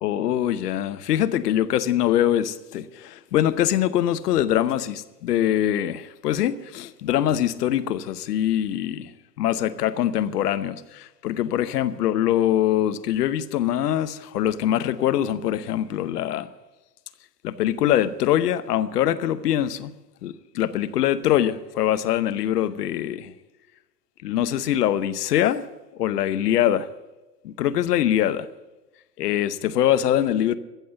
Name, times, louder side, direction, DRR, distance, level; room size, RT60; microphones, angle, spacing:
voice 1, 0.0-9.1 9.4-16.5 17.4-19.9 20.2-23.3 24.2-25.6 26.0-26.9 27.4-28.5 29.2-30.5, left 11 dB, 70° left, 1.0 m, -23 dB
14.5 x 7.5 x 8.6 m
hypercardioid pair, 90°, 49 cm